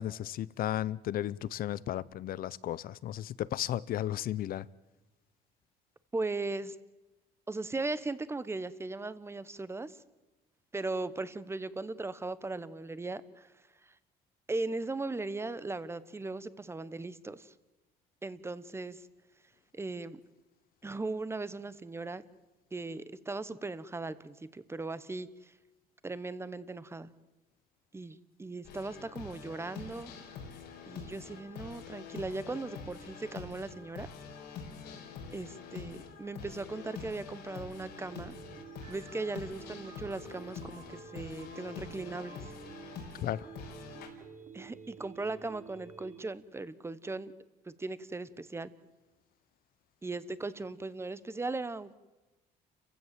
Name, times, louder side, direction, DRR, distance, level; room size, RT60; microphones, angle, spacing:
voice 1, 0.0-4.6 43.2-43.5, left 12 dB, 60° left, 0.7 m, -34 dB
voice 2, 6.1-6.8 7.5-10.0 10.7-13.5 14.5-17.5 18.2-19.0 19.7-20.2 20.8-22.2 22.7-25.5 26.0-27.1 27.9-30.1 30.9-34.1 35.3-38.3 38.9-42.4 44.5-47.3 47.7-48.7 50.0-52.0, right 3 dB, 15° right, 1.0 m, -38 dB
sound 1, 28.6-44.1, left 5 dB, 85° left, 4.3 m, -46 dB
sound 2, 38.1-46.2, right 7 dB, 50° right, 3.6 m, -51 dB
29.0 x 15.5 x 7.6 m
cardioid pair, 110°, 17 cm